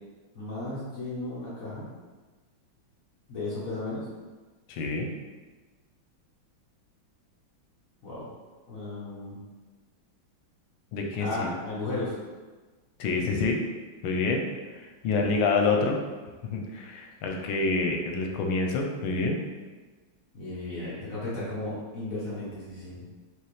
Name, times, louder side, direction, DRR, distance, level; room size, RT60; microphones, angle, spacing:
voice 1, 0.3-1.8 3.3-4.1 8.0-8.3 8.7-9.3 11.2-12.1 15.2-15.3 20.3-23.0, left 2 dB, 50° left, -8 dB, 1.3 m, -34 dB
voice 2, 4.7-5.1 10.9-11.5 13.0-13.6 14.0-14.4 14.7-16.0 16.4-19.4, left 3 dB, 85° left, 2 dB, 1.5 m, -27 dB
4.9 x 3.0 x 3.2 m, 1.3 s
omnidirectional pair, 2.2 m